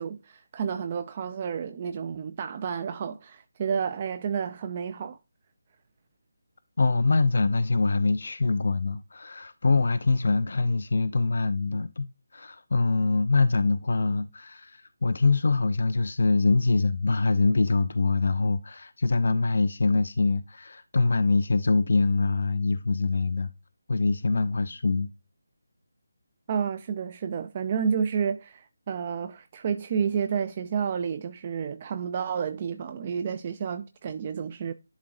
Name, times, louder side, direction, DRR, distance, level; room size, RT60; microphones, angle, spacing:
voice 1, 0.0-5.2 26.5-34.7, right 7 dB, 30° right, 0.4 m, -30 dB
voice 2, 6.8-23.5 23.9-25.1, left 3 dB, 55° left, 0.4 m, -24 dB
11.0 x 3.8 x 2.4 m
figure-of-eight pair, 155°, 0 cm